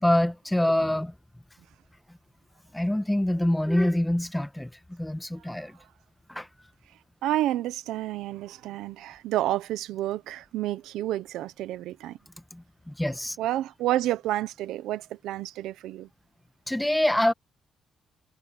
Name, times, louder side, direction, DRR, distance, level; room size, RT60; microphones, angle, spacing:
voice 1, 0.0-1.1 2.7-5.7 6.3-6.5 12.5-13.4 16.7-17.3, left 1 dB, 5° left, 1.6 m, -25 dB
voice 2, 7.2-12.2 13.4-16.1, right 14 dB, 90° right, 1.0 m, -30 dB
cardioid pair, 90°, 0 cm